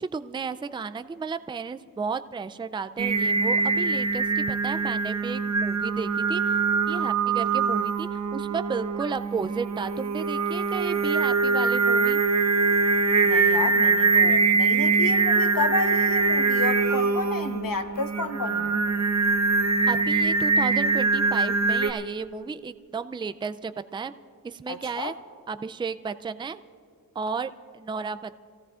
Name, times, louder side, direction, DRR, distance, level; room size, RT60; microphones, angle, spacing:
voice 1, 0.0-6.6 6.9-12.2 19.9-24.1 24.4-25.1 25.5-26.6 27.2-28.3, right 5 dB, 15° right, 12 dB, 0.3 m, -33 dB
Singing, 3.0-21.9, right 4 dB, 50° right, 0.9 m, -23 dB
voice 2, 13.2-18.7 24.7-25.1, left 4 dB, 70° left, 6 dB, 1.1 m, -31 dB
28.0 x 16.5 x 2.5 m, 2.3 s
wide cardioid pair, 85°, 35 cm